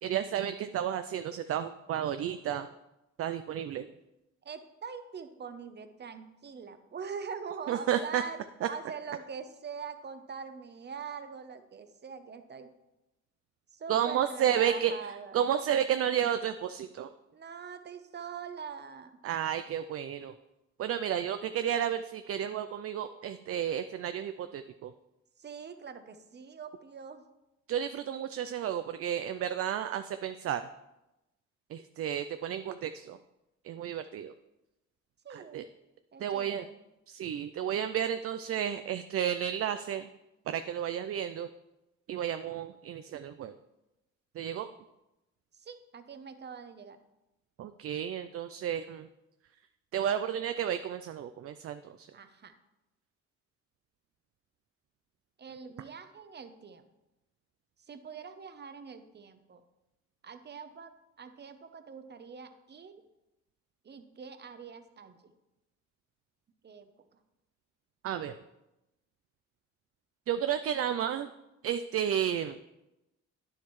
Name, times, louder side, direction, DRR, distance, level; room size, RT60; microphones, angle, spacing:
voice 1, 0.0-2.7 3.2-3.9 7.7-8.2 8.6-8.7 13.9-14.9 15.3-17.1 19.2-20.3 20.8-24.9 27.7-30.6 31.7-33.2 33.6-34.3 35.3-35.6 36.2-36.7 37.1-40.1 40.5-41.5 42.1-43.6 44.3-44.7 47.6-49.1 49.9-52.1 68.0-68.4 70.3-71.3 71.6-72.6, right 9 dB, 50° right, 10 dB, 0.4 m, -32 dB
voice 2, 4.4-8.4 8.7-12.7 13.7-15.4 17.3-19.2 25.4-27.2 35.2-35.6 36.1-36.8 45.6-47.0 52.1-52.5 55.4-56.8 57.9-59.6 60.2-63.0 63.8-65.3 66.6-67.2, right 6 dB, 35° right, 9 dB, 0.8 m, -43 dB
9.8 x 7.2 x 3.1 m, 0.95 s
cardioid pair, 90°, 30 cm